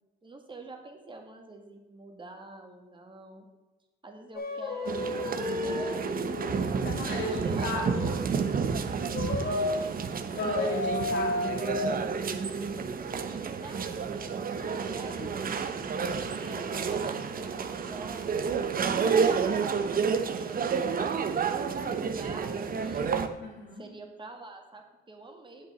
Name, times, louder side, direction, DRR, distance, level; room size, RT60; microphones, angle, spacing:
voice 1, 0.2-3.5 4.0-6.6 7.2-7.7 9.5-10.0 13.3-14.4 14.6-15.6 16.0-18.3 18.6-21.3 21.9-23.1 23.7-25.7, right 2 dB, 25° right, 3 dB, 1.9 m, -47 dB
sound 1, 4.3-8.3 9.1-9.8 10.4-11.9, left 2 dB, 50° left, 1.7 m, -33 dB
sound 2, 4.9-23.3, right 6 dB, 45° right, 0.9 m, -30 dB
voice 2, 6.8-8.2 10.3-11.6 14.6-15.4 23.4-23.9, left 2 dB, 65° left, -1 dB, 2.7 m, -37 dB
8.6 x 7.9 x 4.3 m, 1.1 s
cardioid pair, 90°, 20 cm